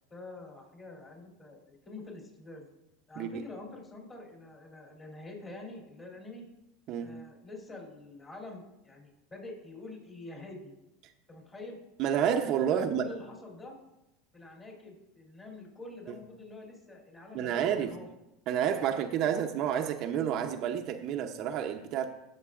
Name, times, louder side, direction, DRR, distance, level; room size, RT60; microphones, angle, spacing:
voice 1, 0.1-2.6 3.1-6.4 7.0-10.7 11.3-11.8 12.7-13.8 14.3-18.1 18.6-19.3, left 2 dB, 25° left, 3.3 m, -46 dB
voice 2, 12.0-13.1 17.3-18.0 18.5-22.1, right 9 dB, 50° right, 0.7 m, -29 dB
16.0 x 6.8 x 2.5 m
supercardioid pair, 115°, 0 cm